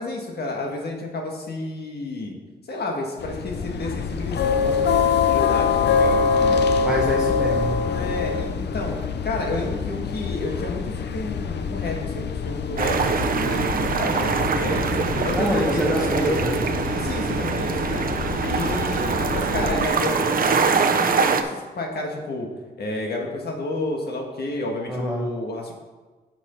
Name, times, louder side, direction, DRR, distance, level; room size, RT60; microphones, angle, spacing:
voice 1, 0.0-2.3 2.7-6.6 7.1-7.2 7.8-9.0 9.2-16.1 16.9-18.0 18.5-22.5 22.8-25.7, left 2 dB, 70° left, 1 dB, 1.6 m, -31 dB
sound 1, 3.2-19.9, left 5 dB, 85° left, 0.6 m, -25 dB
voice 2, 6.8-7.8 15.3-16.6 24.9-25.3, equal, 5° right, -3 dB, 1.0 m, -25 dB
sound 2, 12.8-21.4, right 5 dB, 55° right, 0.7 m, -24 dB
9.3 x 6.2 x 4.5 m, 1.3 s
wide cardioid pair, 165°, 17 cm